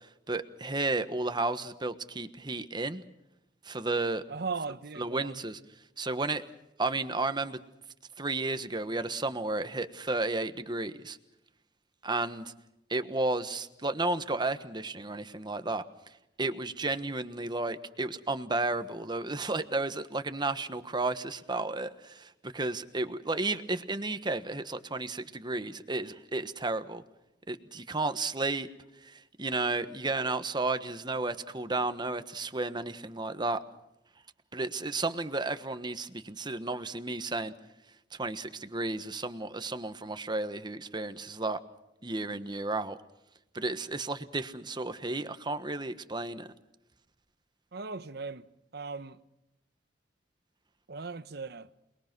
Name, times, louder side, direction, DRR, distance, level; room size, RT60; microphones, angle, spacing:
voice 1, 0.3-3.0 3.6-4.2 5.0-5.6 6.0-6.4 6.8-7.6 8.2-11.2 12.0-12.5 12.9-15.8 16.4-27.0 27.5-28.7 29.0-33.6 34.5-37.5 38.2-41.6 42.0-43.0 43.5-46.5, right 2 dB, 25° right, 1.3 m, -32 dB
voice 2, 4.3-5.4 47.7-48.5 48.7-49.2 50.9-51.7, right 4 dB, 60° right, 1.0 m, -38 dB
28.5 x 21.0 x 6.1 m
head